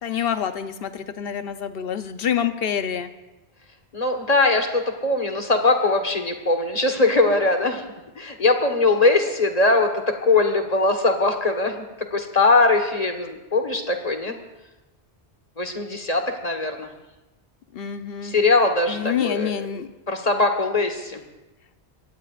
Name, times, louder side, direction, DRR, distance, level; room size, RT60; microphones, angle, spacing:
voice 1, 0.0-3.1 17.7-18.3 18.9-19.9, left 8 dB, 70° left, 10 dB, 1.0 m, -27 dB
voice 2, 3.9-7.8 8.1-11.8 12.1-14.4 15.6-16.9 18.2-19.7 20.1-21.2, left 3 dB, 40° left, 5 dB, 1.5 m, -21 dB
23.0 x 17.0 x 2.5 m, 1.0 s
omnidirectional pair, 1.0 m